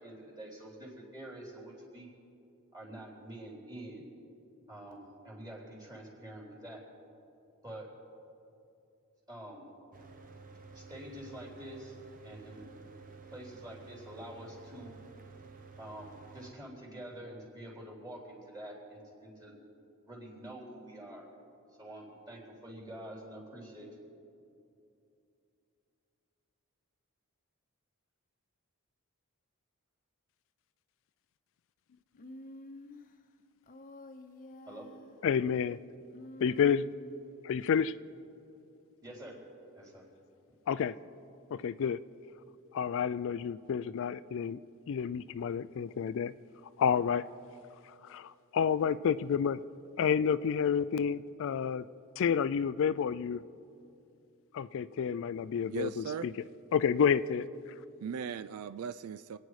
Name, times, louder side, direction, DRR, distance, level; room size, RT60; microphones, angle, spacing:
voice 1, 0.0-2.1 2.7-4.1 4.7-6.8 7.6-7.9 9.3-9.7 10.7-12.0 12.2-12.8 13.3-14.9 15.8-19.5 20.1-21.3 21.8-23.9 34.6-34.9 39.0-39.4 39.8-40.1, right 1 dB, 20° right, 3.4 m, -47 dB
Mechanical fan, 9.9-16.5, right 4 dB, 40° right, 0.9 m, -52 dB
Human voice, 32.2-33.1 33.7-35.2 36.1-37.4, left 1 dB, 40° left, 0.9 m, -49 dB
voice 2, 35.2-35.8 36.4-36.9 37.4-37.9 40.7-40.9 41.5-42.0 42.7-44.6 44.9-46.3 46.8-47.2 48.0-49.6 50.0-51.9 52.2-53.4 54.5-56.3 56.7-57.5, left 7 dB, 65° left, 0.3 m, -29 dB
voice 3, 55.7-56.3 58.0-59.4, right 6 dB, 80° right, 0.4 m, -38 dB
26.0 x 9.5 x 4.8 m
head